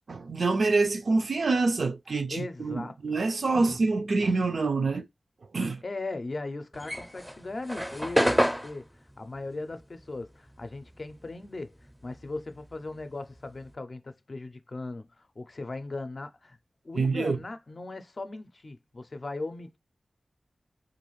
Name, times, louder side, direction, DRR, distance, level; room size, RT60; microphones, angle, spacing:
voice 1, 0.0-5.1 5.5-5.8 17.0-17.4, right 3 dB, 75° right, 0.4 m, -26 dB
voice 2, 2.3-2.9 3.5-3.8 5.8-11.8 12.0-16.6 16.8-19.8, left 2 dB, 50° left, 0.5 m, -38 dB
sound 1, 6.7-11.5 11.7-13.7, equal, ahead, 0.5 m, -29 dB
2.5 x 2.4 x 3.1 m
wide cardioid pair, 65°, 0 cm